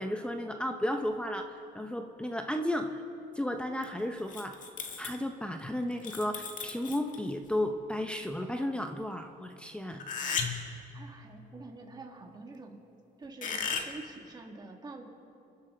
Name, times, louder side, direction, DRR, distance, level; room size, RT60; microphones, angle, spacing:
voice 1, 0.0-3.0 3.3-4.6 5.0-10.0, left 1 dB, 5° left, 5 dB, 0.8 m, -33 dB
sound 1, 3.8-3.9 4.2-5.2 5.9-7.3 10.0-10.8 13.4-13.9, left 6 dB, 50° left, 1.8 m, -35 dB
voice 2, 10.9-12.8 13.2-15.0, right 3 dB, 25° right, 0 dB, 2.4 m, -46 dB
27.5 x 11.0 x 4.0 m, 2.6 s
cardioid pair, 110°, 17 cm